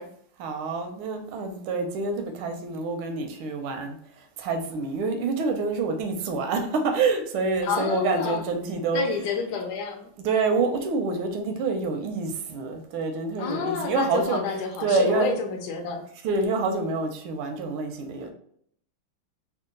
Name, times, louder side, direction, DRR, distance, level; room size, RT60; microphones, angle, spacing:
voice 1, 0.0-9.1 10.2-14.4 14.8-15.3 16.2-18.3, right 4 dB, 80° right, 5 dB, 1.5 m, -27 dB
voice 2, 7.6-8.4 8.9-10.1 13.4-16.0, left 5 dB, 65° left, 4 dB, 1.0 m, -29 dB
3.8 x 2.3 x 3.7 m, 0.66 s
omnidirectional pair, 2.4 m